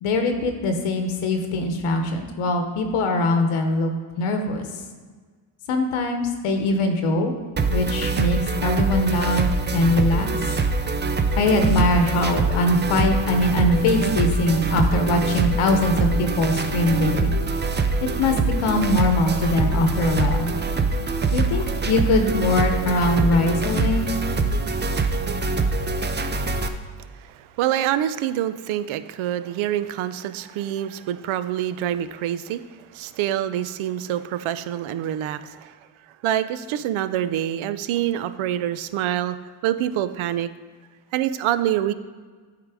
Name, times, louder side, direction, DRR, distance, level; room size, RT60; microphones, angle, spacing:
voice 1, 0.0-3.9 4.2-4.8 5.7-7.3 7.7-10.3 11.4-17.3 18.0-20.5 21.3-24.1, left 2 dB, 85° left, 5 dB, 1.0 m, -22 dB
sound 1, 7.6-26.7, right 3 dB, 25° right, 0.5 m, -24 dB
voice 2, 27.0-35.8 36.2-39.4 39.6-40.5 41.1-41.9, right 11 dB, 75° right, 13 dB, 0.6 m, -26 dB
8.6 x 3.8 x 4.8 m, 1.5 s
cardioid pair, 85°, 49 cm